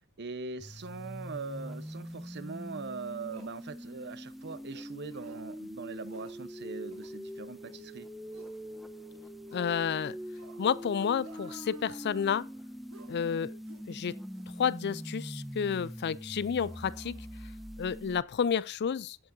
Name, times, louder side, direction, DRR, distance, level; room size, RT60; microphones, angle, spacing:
voice 1, 0.2-8.1, right 4 dB, 55° right, 0.9 m, -41 dB
sound 1, 0.6-18.2, equal, ahead, 0.7 m, -43 dB
sound 2, 3.3-3.6 4.4-4.6 5.1-5.5 6.0-6.4 6.9-7.1 7.6-7.8 8.3-8.6 9.5-9.8 10.3-10.7 11.2-12.5 12.9-13.2 13.7-13.9 14.3-14.5 15.0-15.1 15.7-15.9 16.6-17.6 17.9-18.1, right 3 dB, 70° right, 1.8 m, -55 dB
voice 2, 9.5-10.2 10.6-12.5 13.1-13.6 13.9-14.2 14.6-17.3 17.8-19.2, left 7 dB, 50° left, 0.4 m, -30 dB
15.5 x 6.1 x 2.6 m
head